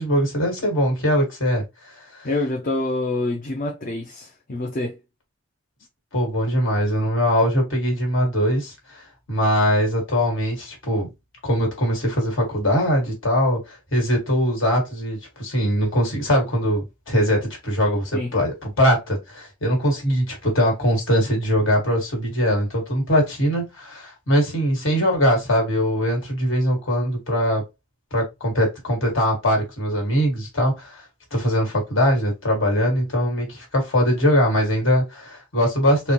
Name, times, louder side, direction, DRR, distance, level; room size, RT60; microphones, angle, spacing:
voice 1, 0.0-2.3 6.1-11.1 11.4-27.6 28.1-36.1, equal, 65° left, 1.8 m, -21 dB
voice 2, 2.2-5.0 18.1-18.3, left 2 dB, 40° left, 0.6 m, -26 dB
4.1 x 2.2 x 3.0 m
head